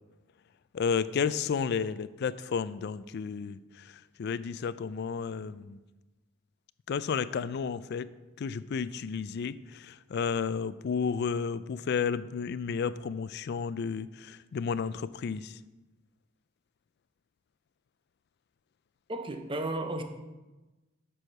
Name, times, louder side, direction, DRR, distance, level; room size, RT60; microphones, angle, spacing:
voice 1, 0.7-3.6 4.2-5.8 6.9-8.1 8.4-15.5, left 6 dB, 55° left, 0.3 m, -32 dB
voice 2, 19.1-20.0, right 1 dB, 25° right, 0.7 m, -33 dB
7.8 x 6.3 x 5.8 m
head